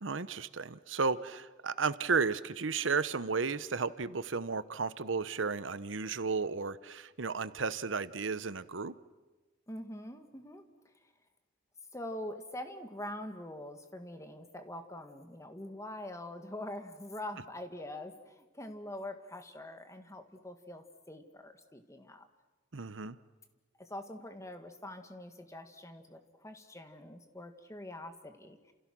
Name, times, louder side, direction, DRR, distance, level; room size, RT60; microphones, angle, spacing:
voice 1, 0.0-8.9 22.7-23.2, right 4 dB, 90° right, 15 dB, 1.0 m, -33 dB
voice 2, 9.7-10.6 11.9-22.3 23.8-28.7, left 1 dB, 15° left, 7 dB, 2.0 m, -44 dB
30.0 x 28.0 x 6.2 m, 1.2 s
head